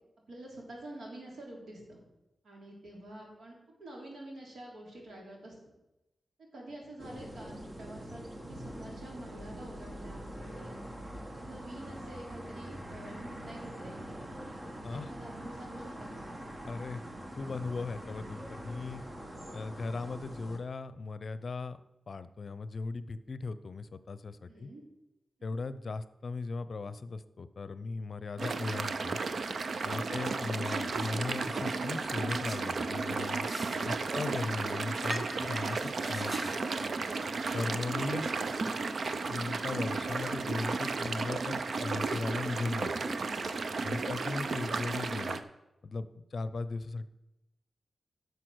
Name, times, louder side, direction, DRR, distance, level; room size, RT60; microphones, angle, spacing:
voice 1, 0.3-2.0 2.4-5.5 6.5-10.8 11.4-14.0 14.7-16.3 24.4-24.8 25.4-25.6, right 1 dB, 85° right, -1 dB, 3.3 m, -48 dB
sound 1, 7.0-20.6, equal, 30° right, 1.4 m, -44 dB
voice 2, 16.6-17.0 17.4-19.0 19.5-21.8 22.1-24.7 25.4-29.2 29.8-33.5 33.8-36.4 37.5-38.3 39.3-42.9 43.8-45.4 45.8-47.1, left 3 dB, 60° left, 14 dB, 0.6 m, -37 dB
sound 2, 28.4-45.4, right 4 dB, 65° right, 0.7 m, -34 dB
sound 3, 30.5-44.7, equal, 10° right, 1.1 m, -46 dB
11.0 x 6.8 x 6.2 m, 0.96 s
wide cardioid pair, 80°, 0 cm